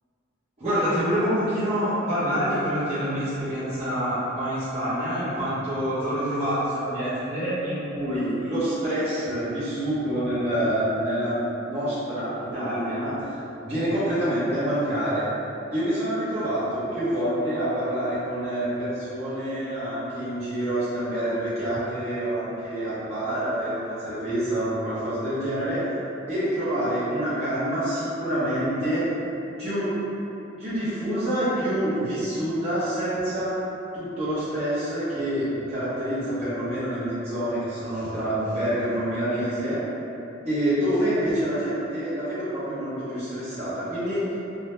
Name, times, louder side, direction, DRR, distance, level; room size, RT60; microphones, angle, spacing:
voice 1, 0.6-13.3 13.6-15.2 15.7-25.8 26.3-29.0 29.6-29.9 30.6-33.5 33.9-39.8 40.4-44.2, right 1 dB, 35° right, -14 dB, 0.7 m, -27 dB
2.2 x 2.1 x 2.9 m, 2.9 s
head